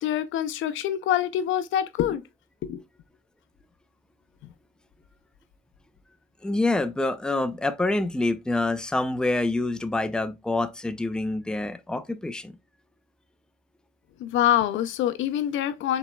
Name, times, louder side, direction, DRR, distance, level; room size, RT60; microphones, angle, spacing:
voice 1, 0.0-2.2 2.6-2.8 14.2-16.0, left 11 dB, 80° left, 0.4 m, -25 dB
voice 2, 6.4-12.6, left 2 dB, 5° left, 0.4 m, -26 dB
4.1 x 4.0 x 2.2 m
cardioid pair, 90°, 20 cm